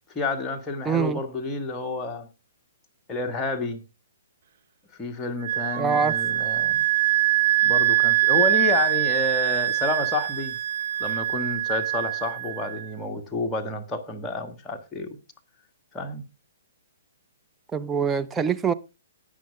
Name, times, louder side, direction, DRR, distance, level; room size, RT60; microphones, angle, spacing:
voice 1, 0.1-2.3 3.1-3.8 5.0-6.9 7.6-10.6 11.0-15.2 15.9-16.2, left 2 dB, 15° left, 1.7 m, -30 dB
voice 2, 0.9-1.2 5.8-6.1 17.7-18.7, right 6 dB, 10° right, 0.6 m, -24 dB
Wind instrument woodwind instrument, 5.4-12.9, right 14 dB, 50° right, 1.0 m, -23 dB
19.0 x 6.4 x 3.5 m
figure-of-eight pair, 125°, 0 cm